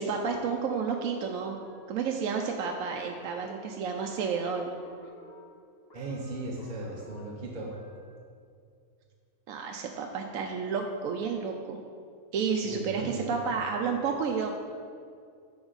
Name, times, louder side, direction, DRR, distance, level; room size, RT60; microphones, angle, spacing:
voice 1, 0.0-1.6 1.9-4.7 9.5-11.8 12.3-14.5, right 5 dB, 75° right, 2 dB, 1.0 m, -31 dB
sound 1, 1.2-8.2, left 1 dB, 50° left, 1.1 m, -52 dB
voice 2, 5.9-7.7 12.6-13.4, right 2 dB, 40° right, -3 dB, 1.0 m, -37 dB
7.8 x 7.0 x 4.0 m, 2.3 s
omnidirectional pair, 1.5 m